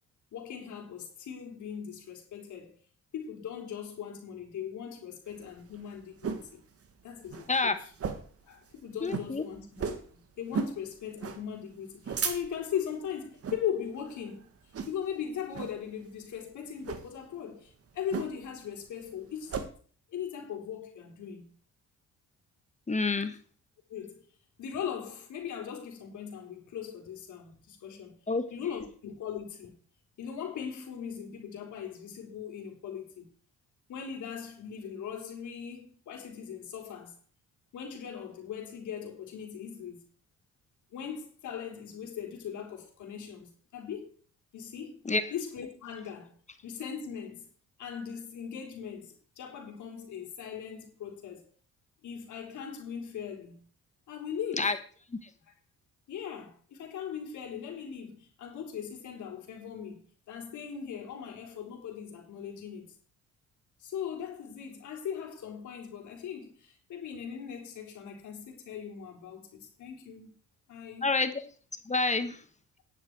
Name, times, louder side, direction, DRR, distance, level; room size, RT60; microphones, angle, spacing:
voice 1, 0.3-2.7 3.1-6.6 7.0-7.9 8.5-14.5 14.9-19.6 20.1-21.5 23.9-24.3 24.6-28.2 28.5-29.7 30.2-33.3 33.9-37.2 37.7-40.1 40.9-44.2 44.5-45.0 45.3-46.4 46.6-47.5 47.8-51.5 52.0-53.6 54.1-54.8 56.1-63.0 63.8-70.3 70.7-71.1, left 8 dB, 75° left, 3.8 m, -39 dB
sound 1, 5.3-6.5 6.9-7.0 7.2-7.5 7.9-8.4 8.7-8.8 9.1-9.3 9.8-10.1 10.5-10.8 11.2-11.4 11.8-12.7 13.3-13.6 14.1-14.3 14.7-15.1 15.5-15.8 16.8-17.1 18.1-18.6 18.9-19.7, right 6 dB, 50° right, 1.7 m, -35 dB
voice 2, 9.0-9.4 22.9-23.4 28.3-28.4 45.0-45.2 54.6-54.8 71.0-71.3 71.9-72.4, left 3 dB, 25° left, 1.3 m, -27 dB
11.0 x 10.0 x 4.6 m
cardioid pair, 90°, 30 cm